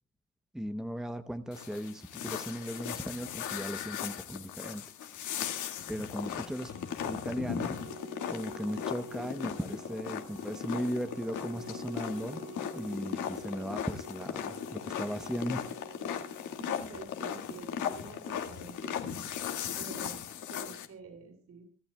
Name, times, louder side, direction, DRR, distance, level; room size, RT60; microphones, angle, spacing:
voice 1, 0.5-4.8 5.9-6.7 7.0-7.8 8.3-12.4 12.7-15.7, equal, ahead, 9 dB, 0.8 m, -37 dB
sound 1, 1.5-20.9, left 8 dB, 75° left, 2.1 m, -38 dB
Organ, 6.1-17.1, right 2 dB, 75° right, 3.8 m, -49 dB
voice 2, 16.6-20.2 20.5-21.6, right 4 dB, 60° right, 4 dB, 7.9 m, -48 dB
25.0 x 12.0 x 2.3 m, 0.37 s
cardioid pair, 90°, 30 cm